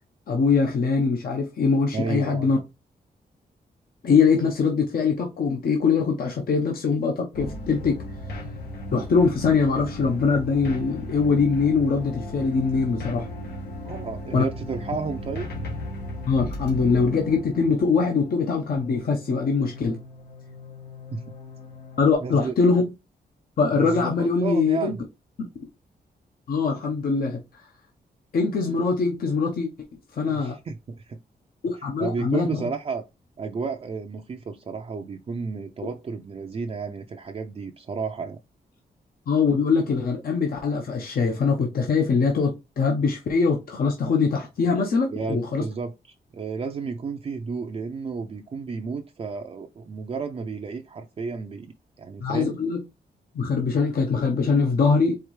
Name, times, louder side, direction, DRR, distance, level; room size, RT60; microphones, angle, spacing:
voice 1, 0.3-2.6 4.0-8.0 8.9-13.3 14.3-14.4 16.3-20.0 22.0-22.9 23.6-24.9 25.4-25.5 26.5-27.7 28.3-29.7 30.1-30.6 31.6-32.7 39.3-45.6 52.2-52.8 53.3-55.2, left 5 dB, 65° left, 0.9 m, -22 dB
voice 2, 1.9-2.5 13.8-15.5 21.1-21.2 22.2-22.6 23.7-25.0 30.2-31.2 32.0-33.0 33.4-38.4 45.1-45.9 46.3-52.6, right 4 dB, 35° right, 0.5 m, -32 dB
sound 1, 7.3-22.1, left 1 dB, 85° left, 1.7 m, -37 dB
4.6 x 3.5 x 3.1 m
cardioid pair, 105°, 17 cm